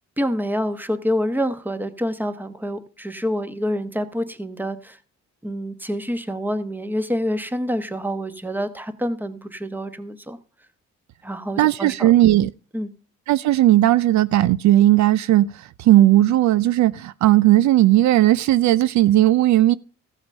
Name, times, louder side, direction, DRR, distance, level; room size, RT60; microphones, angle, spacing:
voice 1, 0.2-5.0 5.4-10.4 11.2-12.1 12.7-12.9, equal, 5° right, 1.1 m, -27 dB
voice 2, 11.6-12.5 13.3-19.7, right 14 dB, 70° right, 0.4 m, -16 dB
15.0 x 5.9 x 5.4 m
cardioid pair, 90°, 30 cm